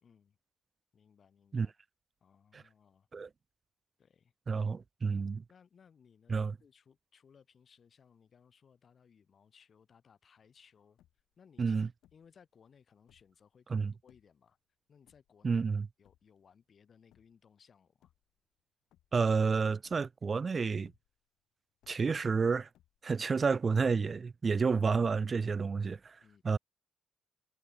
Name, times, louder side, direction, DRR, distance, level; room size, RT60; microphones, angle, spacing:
voice 1, 0.0-0.4 0.9-1.7 2.2-3.1 4.0-4.3 5.5-11.0 11.4-11.8 12.1-14.6 14.9-15.6 16.0-18.1 26.2-26.6, left 7 dB, 40° left, 2.7 m, -63 dB
voice 2, 4.5-5.4 6.3-6.5 11.6-11.9 13.7-13.9 15.4-15.9 19.1-20.9 21.9-22.7 23.0-26.2 26.4-26.6, right 5 dB, 30° right, 0.4 m, -30 dB
sound 1, 11.0-11.4 12.0-12.4 12.9-13.5 14.1-14.5 15.1-15.6 16.0-16.5 17.1-17.5 17.9-18.6 18.9-19.4 19.8-20.4 20.8-21.4 21.8-22.3 22.7-23.3 23.7-24.2, left 13 dB, 85° left, 3.8 m, -69 dB
cardioid pair, 140°, 0 cm